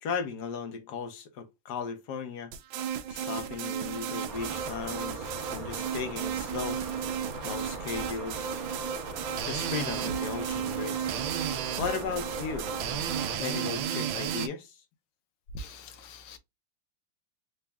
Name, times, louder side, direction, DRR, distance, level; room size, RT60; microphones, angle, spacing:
voice 1, 0.0-2.5 3.1-6.8 7.4-8.6 9.4-11.1 11.8-12.7 13.4-14.8, left 5 dB, 60° left, 1.2 m, -36 dB
sound 1, 2.5-14.5, right 8 dB, 75° right, 1.3 m, -34 dB
sound 2, 4.3-13.4, right 3 dB, 30° right, 0.8 m, -40 dB
voice 2, 15.5-16.4, left 1 dB, 80° left, 1.5 m, -43 dB
4.1 x 2.3 x 3.3 m
omnidirectional pair, 2.3 m